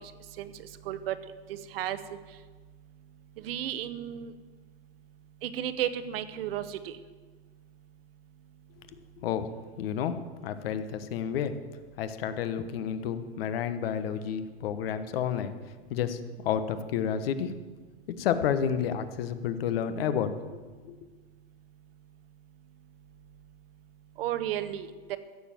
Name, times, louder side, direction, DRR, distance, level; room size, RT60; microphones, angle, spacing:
voice 1, 0.4-1.2 1.5-2.0 3.4-4.3 5.4-7.0 24.2-25.2, right 11 dB, 70° right, 12 dB, 1.1 m, -33 dB
voice 2, 9.8-10.2 10.4-11.6 12.0-15.5 15.9-17.5 18.2-20.6 20.8-21.0, left 8 dB, 70° left, 10 dB, 1.2 m, -30 dB
14.5 x 7.3 x 7.5 m, 1.4 s
hypercardioid pair, 130°, 31 cm